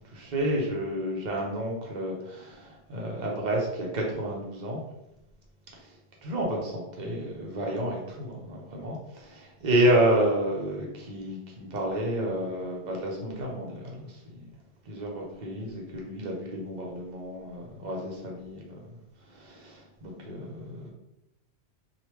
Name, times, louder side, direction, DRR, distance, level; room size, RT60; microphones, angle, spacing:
voice 1, 0.1-4.8 5.7-5.9 6.2-14.4 14.9-18.8 19.3-20.9, right 1 dB, 45° right, -2 dB, 0.8 m, -30 dB
3.0 x 2.4 x 3.2 m, 0.85 s
omnidirectional pair, 1.1 m